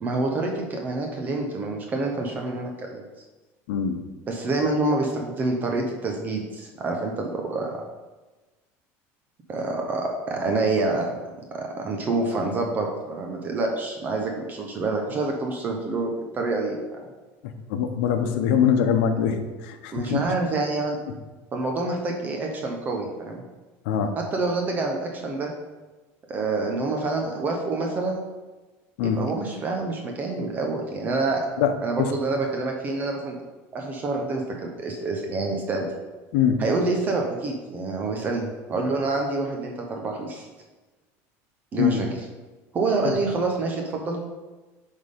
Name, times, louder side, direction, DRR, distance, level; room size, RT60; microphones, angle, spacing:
voice 1, 0.0-3.1 4.3-7.8 9.5-11.1 11.5-17.0 19.9-21.0 21.5-23.4 24.2-25.5 26.3-28.3 29.0-31.5 31.8-33.4 33.7-35.9 36.6-40.5 41.7-42.1 42.7-44.2, right 3 dB, 25° right, 1 dB, 0.7 m, -27 dB
voice 2, 17.7-20.2 21.1-21.2 23.8-24.1 29.0-29.2 31.6-31.7 32.0-32.1 36.3-36.6 41.8-42.0 43.0-43.1, left 8 dB, 75° left, 7 dB, 0.9 m, -23 dB
7.9 x 3.6 x 5.2 m, 1.2 s
cardioid pair, 160°, 7 cm